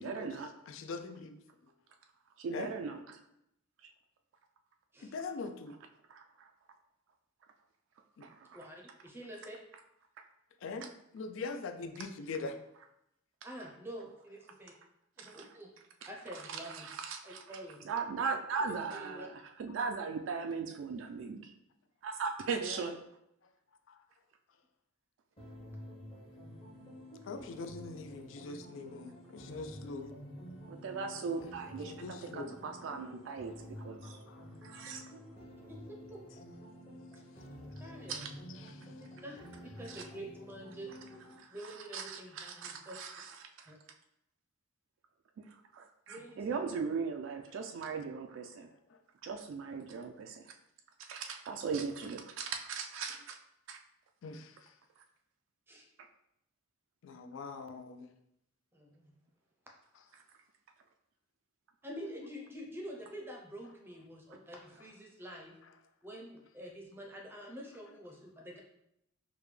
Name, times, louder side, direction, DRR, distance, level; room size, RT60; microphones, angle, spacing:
voice 1, 0.0-0.5 2.4-3.0 3.8-3.9 6.1-6.5 8.2-8.6 15.2-15.5 16.0-16.1 16.5-17.6 17.8-21.5 22.0-23.0 30.7-34.2 34.6-35.0 38.1-38.3 39.9-40.0 41.4-43.7 45.5-48.7 49.2-50.5 51.1-53.4 53.7-53.8, right 5 dB, 70° right, 4 dB, 0.3 m, -39 dB
voice 2, 0.7-1.4 2.5-2.7 5.1-5.8 8.2-8.3 10.6-10.9 11.1-12.6 23.9-24.0 27.2-30.1 31.9-32.5 34.0-34.4 38.6-38.9 48.9-49.0 54.2-54.7 57.0-58.1, left 4 dB, 70° left, 8 dB, 0.4 m, -42 dB
voice 3, 8.5-9.6 13.4-14.7 15.2-15.7 16.1-16.9 17.2-17.9 18.6-19.3 22.6-22.9 35.7-35.8 36.1-36.2 37.8-38.2 39.2-39.4 39.8-40.9 41.5-43.0 43.7-43.8 46.1-46.7 55.7-55.9 58.7-59.1 61.8-65.5 66.0-68.6, equal, 10° right, 0 dB, 0.5 m, -47 dB
sound 1, 25.4-41.4, equal, 30° left, 0.8 m, -50 dB
4.9 x 2.2 x 3.2 m, 0.79 s
head